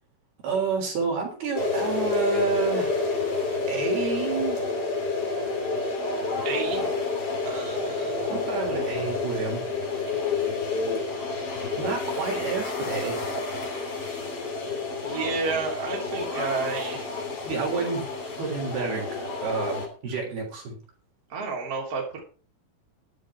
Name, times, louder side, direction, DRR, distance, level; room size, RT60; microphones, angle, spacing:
voice 1, 0.4-2.9 3.7-4.6 8.3-9.6 11.8-13.2 17.4-19.1 19.4-20.8, right 5 dB, 55° right, 0 dB, 5.1 m, -29 dB
sound 1, 1.5-19.9, left 3 dB, 35° left, 3.2 m, -29 dB
voice 2, 6.4-6.9 7.4-8.5 15.0-17.0 21.3-22.2, right 4 dB, 35° right, -2 dB, 3.8 m, -31 dB
11.0 x 11.0 x 4.8 m, 0.38 s
omnidirectional pair, 5.9 m